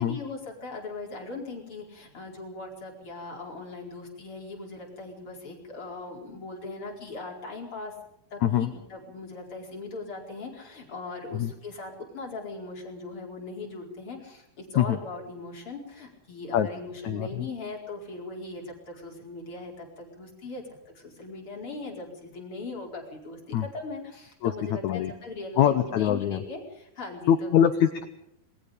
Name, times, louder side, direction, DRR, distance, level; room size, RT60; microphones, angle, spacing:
voice 1, 0.0-7.9 8.3-27.5, left 3 dB, 35° left, 0 dB, 5.4 m, -39 dB
voice 2, 8.4-8.7 11.3-11.5 14.8-15.0 16.5-16.7 17.0-17.5 23.5-23.7 24.4-25.1 25.6-26.4 27.3-28.1, left 10 dB, 70° left, 9 dB, 1.9 m, -24 dB
27.0 x 21.5 x 5.2 m, 0.77 s
omnidirectional pair, 4.3 m